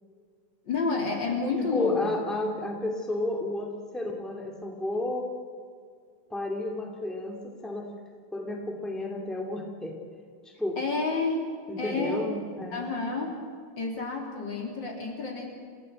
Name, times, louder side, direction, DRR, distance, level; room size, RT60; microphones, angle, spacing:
voice 1, 0.7-2.1 10.8-11.5 11.8-12.2 12.7-13.3 13.8-15.5, left 4 dB, 60° left, 0 dB, 4.2 m, -30 dB
voice 2, 1.6-5.3 6.3-7.9 8.3-10.0 10.6-10.8 11.7-12.9, left 2 dB, ahead, 1 dB, 2.5 m, -32 dB
28.5 x 16.0 x 8.1 m, 2.1 s
omnidirectional pair, 2.3 m